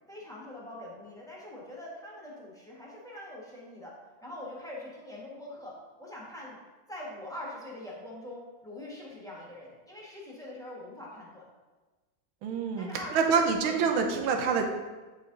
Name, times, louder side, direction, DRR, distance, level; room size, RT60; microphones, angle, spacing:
voice 1, 0.1-3.9 4.2-5.7 6.0-6.6 6.9-11.4 12.8-14.6, left 1 dB, ahead, -5 dB, 1.0 m, -43 dB
voice 2, 12.4-14.6, right 5 dB, 90° right, 3 dB, 1.6 m, -26 dB
9.2 x 3.8 x 3.8 m, 1.3 s
omnidirectional pair, 2.2 m